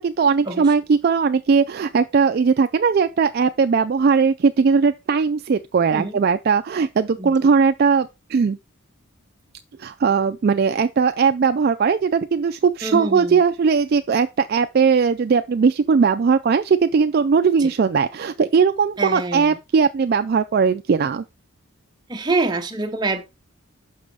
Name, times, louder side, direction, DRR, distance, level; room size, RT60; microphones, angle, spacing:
voice 1, 0.0-8.6 9.8-21.2, right 5 dB, 45° right, 0.3 m, -19 dB
voice 2, 12.8-13.4 17.6-17.7 19.0-19.6 22.1-23.2, right 2 dB, 20° right, 0.8 m, -25 dB
6.1 x 5.5 x 4.7 m
head